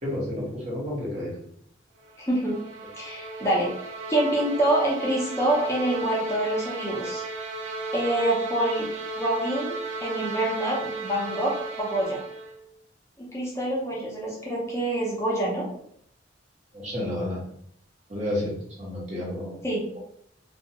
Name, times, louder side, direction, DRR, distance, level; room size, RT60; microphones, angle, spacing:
voice 1, 0.0-1.3 16.7-17.4 18.1-19.6, left 1 dB, 40° right, -5 dB, 1.0 m, -30 dB
sound 1, 2.1-12.6, right 3 dB, 85° right, 0.5 m, -35 dB
voice 2, 2.2-2.6 3.0-3.7 4.1-7.2 7.9-8.9 9.2-12.2 13.2-15.6 19.6-20.0, right 1 dB, 15° left, -5 dB, 0.5 m, -26 dB
2.3 x 2.2 x 2.8 m, 0.68 s
head